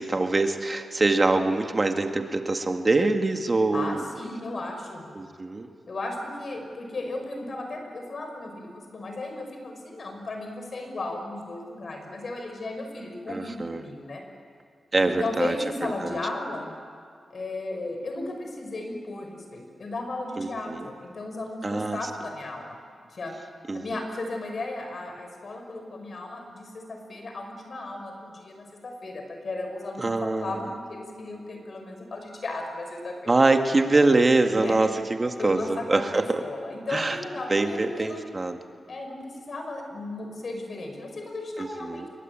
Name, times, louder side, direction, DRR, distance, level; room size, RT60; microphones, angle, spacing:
voice 1, 0.0-4.0 5.2-5.7 13.3-13.8 14.9-15.6 15.8-16.2 20.4-20.9 21.6-22.0 23.7-23.8 30.0-30.6 33.3-36.4 36.9-37.2 37.5-38.6 41.6-42.1, right 2 dB, 35° right, 5 dB, 2.0 m, -24 dB
voice 2, 3.7-5.1 5.9-14.2 14.9-16.7 17.3-22.8 23.1-23.3 23.7-33.3 34.5-34.8 35.4-38.3 38.9-42.1, left 2 dB, 60° left, 3 dB, 6.2 m, -35 dB
26.5 x 22.5 x 8.9 m, 2.1 s
cardioid pair, 70°, 0 cm